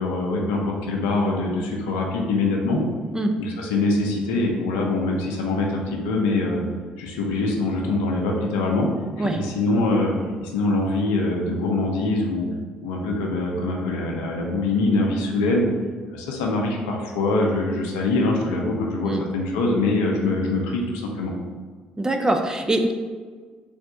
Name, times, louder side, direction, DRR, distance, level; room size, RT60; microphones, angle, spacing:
voice 1, 0.0-2.8 3.4-6.6 7.0-8.9 9.2-10.1 10.4-12.5 12.8-15.7 16.1-21.3, left 2 dB, 70° left, 0 dB, 0.5 m, -23 dB
voice 2, 22.0-22.9, right 1 dB, 15° right, 4 dB, 0.4 m, -22 dB
3.3 x 2.6 x 3.7 m, 1.5 s
figure-of-eight pair, 45°, 4 cm